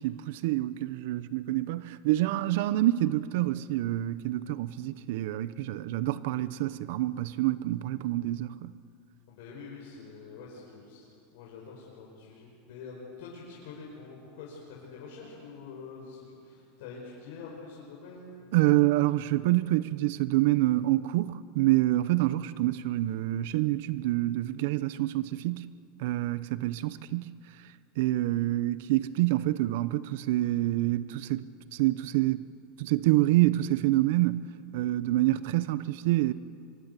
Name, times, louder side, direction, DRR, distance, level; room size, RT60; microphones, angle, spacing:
voice 1, 0.0-8.7 18.5-25.7 26.0-27.3 28.0-32.4 32.8-36.3, right 16 dB, 70° right, 0.8 m, -27 dB
voice 2, 9.3-11.0 11.3-18.5 28.2-28.4, left 4 dB, 70° left, 5.6 m, -46 dB
24.5 x 21.0 x 8.3 m
supercardioid pair, 130°, 0 cm